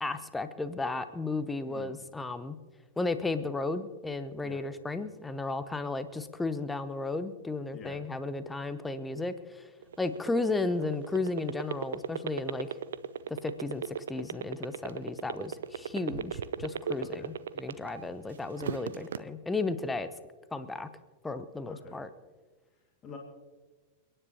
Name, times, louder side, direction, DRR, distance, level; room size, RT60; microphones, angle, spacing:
voice 1, 0.0-2.6 3.0-9.7 10.0-12.7 13.3-20.1 20.5-20.9 21.2-22.1, left 3 dB, 10° left, 12 dB, 0.8 m, -34 dB
voice 2, 1.7-2.0 4.4-4.6 7.7-8.0 17.2-17.3 21.6-22.0 23.0-23.2, left 4 dB, 25° left, 0 dB, 2.2 m, -46 dB
sound 1, 9.8-18.0 18.4-19.2, right 9 dB, 65° right, 0.5 m, -34 dB
30.0 x 10.0 x 3.0 m, 1.3 s
figure-of-eight pair, 90°, 0 cm